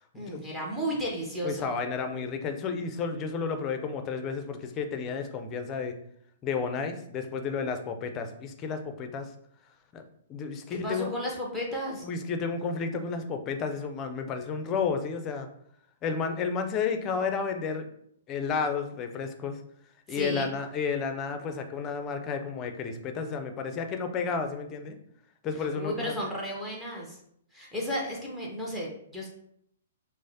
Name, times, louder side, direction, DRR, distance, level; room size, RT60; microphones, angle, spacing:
voice 1, 0.1-1.7 10.7-12.0 20.1-20.5 25.7-27.2 27.5-29.3, equal, 5° right, -3 dB, 0.9 m, -33 dB
voice 2, 1.4-5.9 6.4-9.3 9.9-10.0 10.3-11.1 12.0-15.5 16.0-17.9 18.3-19.6 20.1-25.0 25.4-26.2, left 5 dB, 25° left, 7 dB, 0.5 m, -32 dB
6.1 x 2.1 x 2.7 m, 0.70 s
figure-of-eight pair, 120°, 0 cm